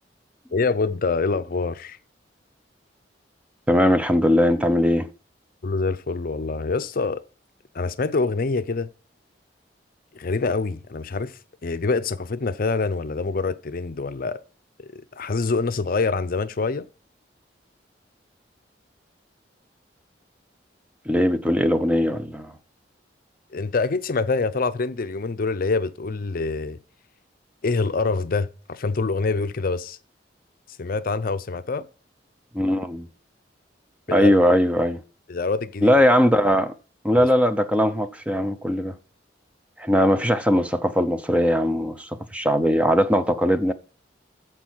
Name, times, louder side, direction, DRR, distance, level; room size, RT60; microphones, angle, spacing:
voice 1, 0.5-2.0 5.6-7.2 7.7-8.9 10.1-11.3 11.6-14.4 14.8-16.9 23.5-26.8 27.6-30.0 30.8-31.9 34.2-34.4 35.3-35.9, left 4 dB, 50° left, 0.6 m, -25 dB
voice 2, 3.7-5.1 21.1-22.5 32.5-33.1 34.1-35.0 35.8-36.7 37.0-39.0 39.8-43.7, equal, 5° right, 0.6 m, -20 dB
13.5 x 4.6 x 6.1 m
head